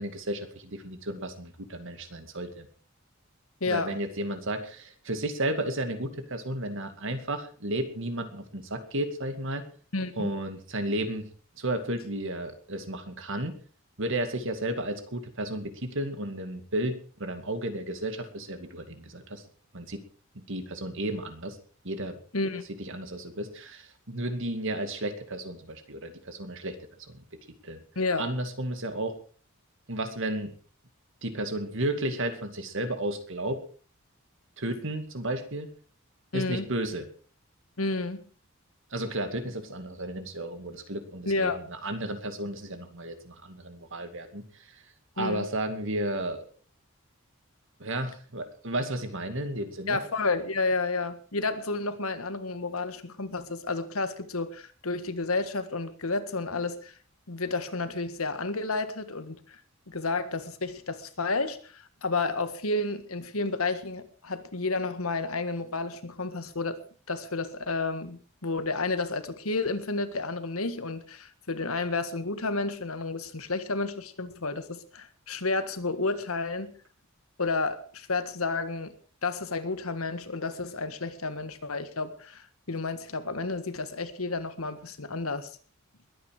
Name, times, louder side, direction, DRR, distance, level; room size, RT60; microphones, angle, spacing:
voice 1, 0.0-2.7 3.7-9.6 10.2-11.3 11.6-13.5 14.0-19.4 19.7-20.0 20.3-21.6 21.8-22.2 22.8-26.8 27.1-27.2 27.6-27.8 28.2-29.2 29.9-30.5 31.2-33.6 34.6-35.7 36.3-37.1 38.9-44.8 45.2-46.5 47.8-50.0, right 1 dB, 65° right, 2.4 m, -33 dB
voice 2, 3.6-4.0 9.9-10.3 22.3-22.6 28.0-28.3 36.3-36.7 37.8-38.2 41.3-41.6 45.2-45.5 49.9-56.9 57.3-59.6 59.9-66.8 67.1-76.7 77.4-78.9 79.2-85.5, left 3 dB, 85° left, 1.7 m, -31 dB
21.5 x 9.5 x 4.9 m
head